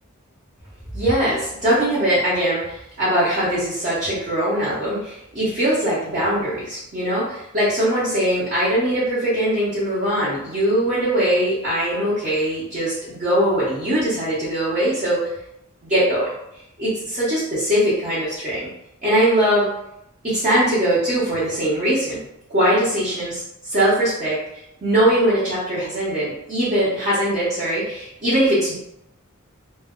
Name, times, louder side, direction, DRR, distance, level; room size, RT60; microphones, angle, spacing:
voice 1, 0.9-15.2 15.9-16.3 16.8-18.7 19.0-19.7 20.2-22.2 22.5-23.4 23.7-24.4 24.8-28.7, right 1 dB, 40° right, -12 dB, 0.9 m, -21 dB
2.1 x 2.1 x 3.5 m, 0.81 s
head